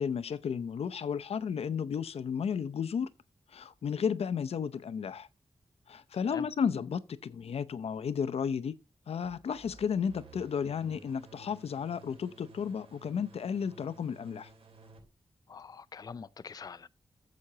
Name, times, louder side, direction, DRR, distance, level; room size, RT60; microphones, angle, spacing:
voice 1, 0.0-3.1 3.5-5.3 5.9-8.8 9.1-14.5, left 7 dB, 90° left, 0.6 m, -33 dB
sound 1, 9.2-15.0, right 3 dB, 75° right, 3.4 m, -55 dB
voice 2, 15.5-17.0, left 5 dB, 40° left, 0.4 m, -44 dB
13.0 x 7.7 x 2.8 m
wide cardioid pair, 130°, 10 cm